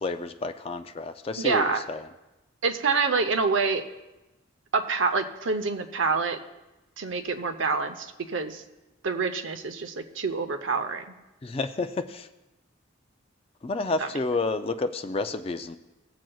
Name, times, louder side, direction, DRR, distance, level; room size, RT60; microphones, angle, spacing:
voice 1, 0.0-2.0 11.4-12.3 13.6-15.8, left 3 dB, 30° left, 8 dB, 0.3 m, -30 dB
voice 2, 1.3-1.8 2.6-3.8 4.7-6.4 7.0-8.6 9.0-11.0 14.0-14.1, right 4 dB, 80° right, 8 dB, 0.7 m, -26 dB
19.0 x 7.6 x 2.3 m, 1.0 s
head